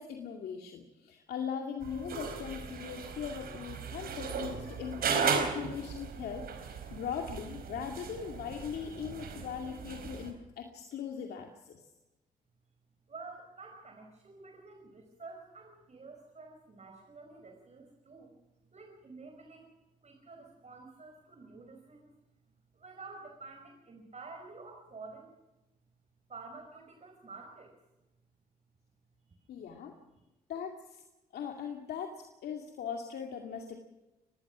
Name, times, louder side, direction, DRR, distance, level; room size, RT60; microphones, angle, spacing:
voice 1, 0.0-11.8 29.5-29.9 30.5-31.0 31.3-33.8, left 7 dB, 80° left, 3 dB, 2.4 m, -40 dB
sound 1, 1.8-10.3, right 6 dB, 70° right, 4.4 m, -36 dB
voice 2, 13.1-18.3 18.7-19.7 20.0-22.2 22.7-25.3 26.3-27.8 29.4-29.5, right 3 dB, 45° right, 3 dB, 5.2 m, -50 dB
25.0 x 19.5 x 6.2 m, 1.0 s
supercardioid pair, 55°, 16 cm